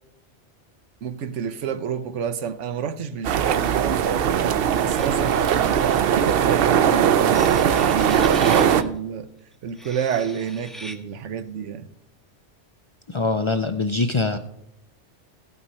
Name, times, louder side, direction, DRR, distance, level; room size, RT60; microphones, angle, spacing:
voice 1, 1.0-4.4 4.8-9.3 9.6-11.9, right 7 dB, 90° right, 1.1 m, -29 dB
sound 1, 3.2-8.8, right 8 dB, 60° right, 0.7 m, -20 dB
sound 2, 4.7-6.3 7.2-8.9 9.7-11.0, equal, ahead, 0.6 m, -41 dB
voice 2, 13.1-14.4, left 3 dB, 55° left, 0.3 m, -23 dB
16.0 x 6.0 x 5.4 m
omnidirectional pair, 1.2 m